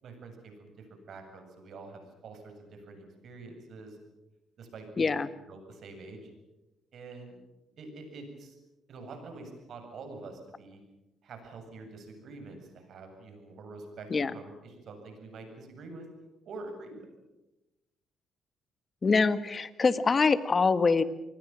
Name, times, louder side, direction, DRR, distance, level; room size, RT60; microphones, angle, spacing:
voice 1, 0.0-4.0 4.6-5.2 5.5-6.3 6.9-7.4 7.8-8.6 8.9-10.8 11.2-16.1 16.4-17.1, right 3 dB, 65° right, 5 dB, 7.8 m, -46 dB
voice 2, 5.0-5.3 14.1-14.3 19.0-21.0, left 4 dB, 35° left, 13 dB, 1.5 m, -24 dB
28.0 x 20.0 x 7.5 m, 0.98 s
cardioid pair, 90°, 0 cm